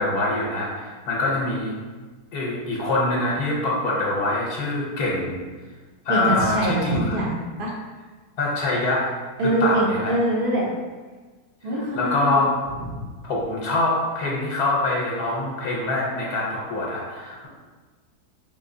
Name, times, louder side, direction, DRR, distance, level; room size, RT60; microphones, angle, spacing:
voice 1, 0.0-1.7 2.3-5.4 6.0-7.2 8.4-9.1 9.6-10.1 11.7-12.5 13.2-17.5, left 2 dB, 75° left, -4 dB, 1.3 m, -24 dB
voice 2, 6.1-7.7 9.4-10.7 11.6-12.3 12.9-13.0, right 1 dB, 50° right, -3 dB, 0.7 m, -24 dB
4.2 x 3.6 x 2.6 m, 1.4 s
omnidirectional pair, 1.7 m